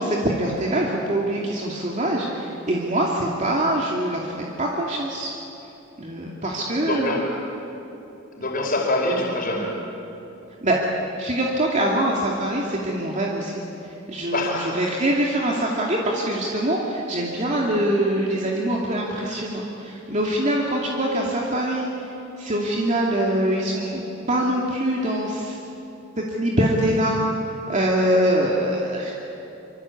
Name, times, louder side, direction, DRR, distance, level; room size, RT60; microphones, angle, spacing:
voice 1, 0.0-4.3 4.6-5.3 6.0-7.2 10.6-10.8 11.2-13.6 14.1-21.9 22.4-25.6 26.3-27.2 27.7-29.2, right 1 dB, 35° right, -2 dB, 2.6 m, -24 dB
voice 2, 6.8-7.2 8.3-9.7 14.3-15.0, left 2 dB, 45° left, 0 dB, 5.1 m, -25 dB
25.5 x 25.5 x 8.6 m, 2.9 s
head